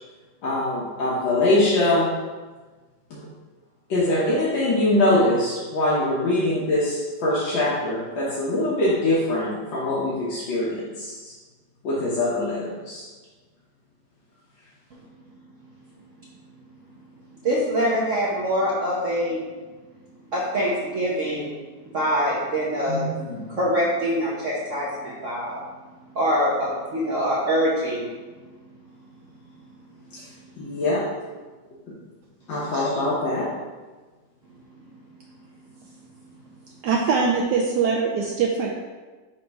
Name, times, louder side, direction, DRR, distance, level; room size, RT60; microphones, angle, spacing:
voice 1, 0.4-2.1 3.1-3.2 3.9-11.3 11.8-13.0 22.9-23.6 30.6-31.0 32.5-33.5, left 1 dB, 85° left, -7 dB, 1.8 m, -23 dB
voice 2, 17.4-19.4 20.3-21.5 21.9-23.1 23.5-25.6 26.1-28.1, equal, 50° right, -6 dB, 1.1 m, -24 dB
voice 3, 32.7-33.1 36.8-38.8, right 5 dB, 70° right, 0 dB, 1.1 m, -23 dB
5.7 x 3.2 x 5.2 m, 1.3 s
omnidirectional pair, 2.0 m